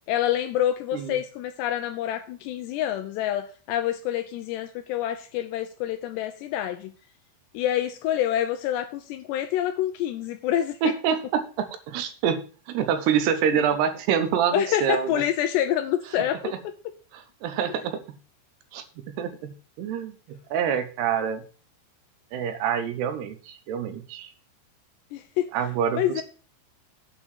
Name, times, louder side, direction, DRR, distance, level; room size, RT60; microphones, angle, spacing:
voice 1, 0.1-6.9 7.5-10.9 14.5-16.7 25.1-25.5 25.9-26.2, left 11 dB, 80° left, 8 dB, 2.6 m, -27 dB
voice 2, 10.8-15.2 17.1-18.0 18.7-21.4 22.3-24.3 25.5-26.2, right 8 dB, 70° right, 9 dB, 2.8 m, -27 dB
8.6 x 5.3 x 7.3 m, 0.37 s
omnidirectional pair, 5.5 m